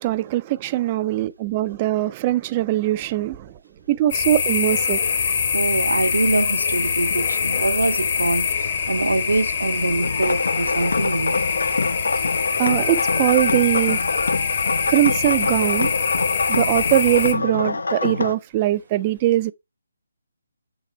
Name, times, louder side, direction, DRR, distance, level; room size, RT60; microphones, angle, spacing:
voice 1, 0.0-3.5 3.9-5.0 12.6-14.0 14.9-15.9 16.5-19.5, right 15 dB, 25° right, 0.4 m, -21 dB
sound 1, 4.1-17.3, left 6 dB, 40° left, 1.1 m, -24 dB
voice 2, 5.5-8.5 8.9-11.3, right 2 dB, 70° right, 0.9 m, -23 dB
sound 2, 10.0-18.4, left 3 dB, 60° left, 0.5 m, -25 dB
7.2 x 4.1 x 4.3 m
figure-of-eight pair, 145°, 0 cm